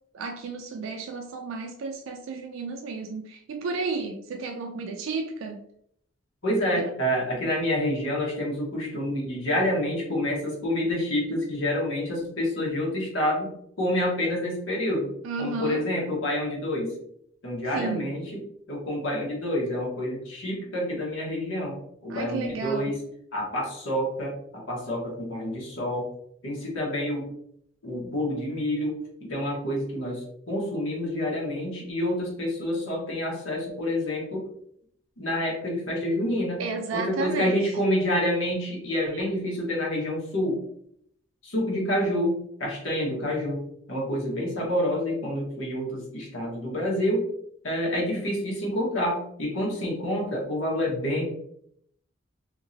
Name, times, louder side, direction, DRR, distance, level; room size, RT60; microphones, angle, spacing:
voice 1, 0.1-5.6 6.8-6.9 15.2-15.8 17.7-18.1 22.1-22.9 36.6-37.5 39.1-39.2, right 4 dB, 75° right, 4 dB, 0.3 m, -32 dB
voice 2, 6.4-13.5 13.8-15.1 15.4-16.9 17.4-18.2 18.7-21.8 22.0-23.0 23.3-26.1 26.4-27.3 27.8-28.9 29.2-34.4 35.2-36.6 36.9-40.6 41.4-43.6 43.9-47.3 47.6-51.2, left 1 dB, 75° left, -3 dB, 1.2 m, -28 dB
2.9 x 2.8 x 2.6 m, 0.71 s
head